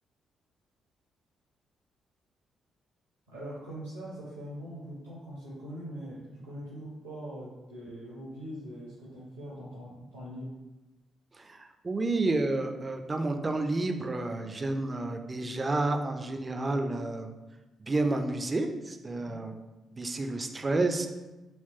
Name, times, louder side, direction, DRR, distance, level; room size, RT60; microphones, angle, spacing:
voice 1, 3.3-10.5 19.1-19.4, equal, 80° right, -8 dB, 0.7 m, -42 dB
voice 2, 11.4-17.3 17.8-19.6 19.9-21.1, right 2 dB, 30° right, 5 dB, 0.4 m, -30 dB
3.3 x 2.9 x 2.7 m, 1.1 s
figure-of-eight pair, 40°, 0 cm